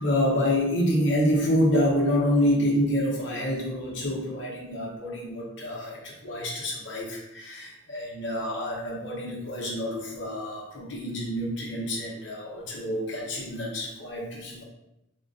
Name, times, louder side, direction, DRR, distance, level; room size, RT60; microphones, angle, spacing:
voice 1, 0.0-14.6, equal, 70° left, -4 dB, 0.8 m, -27 dB
3.7 x 2.2 x 2.5 m, 0.88 s
head